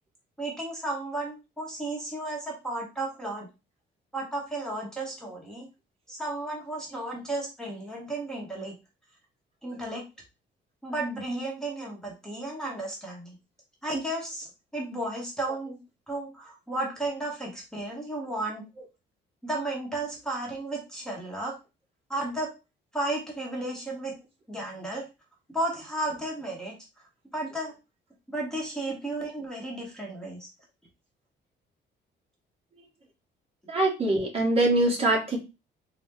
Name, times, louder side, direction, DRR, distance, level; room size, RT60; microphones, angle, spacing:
voice 1, 0.4-3.5 4.1-5.7 6.1-8.7 9.6-10.0 10.8-13.3 13.8-14.5 14.7-15.8 16.1-18.6 19.4-21.5 22.1-22.5 22.9-24.1 24.5-25.0 25.5-26.7 27.3-27.7 28.3-30.5, right 2 dB, 5° left, -3 dB, 0.9 m, -33 dB
voice 2, 33.7-35.4, right 2 dB, 30° right, -1 dB, 1.1 m, -23 dB
4.1 x 2.1 x 3.5 m, 0.27 s
cardioid pair, 165°, 19 cm